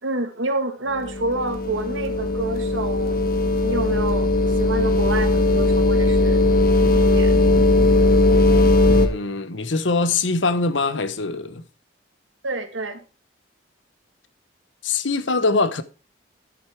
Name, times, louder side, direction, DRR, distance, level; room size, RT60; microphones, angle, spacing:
voice 1, 0.0-3.2 3.6-6.5 7.0-7.4 12.4-13.0, right 2 dB, 90° right, 2.0 m, -28 dB
sound 1, 0.9-9.1, left 2 dB, 50° left, 1.3 m, -18 dB
voice 2, 8.9-11.6 14.8-15.8, left 3 dB, 80° left, 1.0 m, -23 dB
11.0 x 8.2 x 4.6 m
head